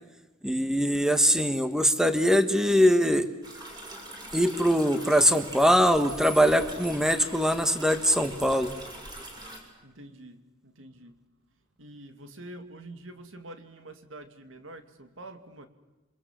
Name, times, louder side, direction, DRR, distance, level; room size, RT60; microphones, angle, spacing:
voice 1, 0.4-3.3 4.3-8.7, equal, 5° right, 9 dB, 1.4 m, -22 dB
sound 1, 3.4-9.6, right 1 dB, 20° right, 6.9 m, -42 dB
voice 2, 9.8-11.2 11.8-15.7, right 1 dB, 70° right, 8 dB, 2.6 m, -46 dB
27.0 x 25.5 x 7.6 m, 1.1 s
head